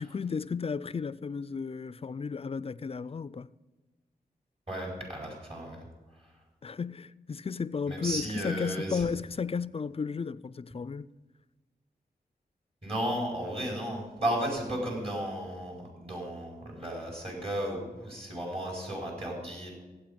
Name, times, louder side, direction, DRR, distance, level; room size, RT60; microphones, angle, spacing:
voice 1, 0.0-3.5 6.6-11.1, left 5 dB, 35° left, 0.4 m, -34 dB
voice 2, 4.7-5.8 6.2-6.3 7.9-9.1 12.8-19.7, right 1 dB, 35° right, 4.6 m, -34 dB
16.0 x 8.3 x 5.2 m
cardioid pair, 55°, 16 cm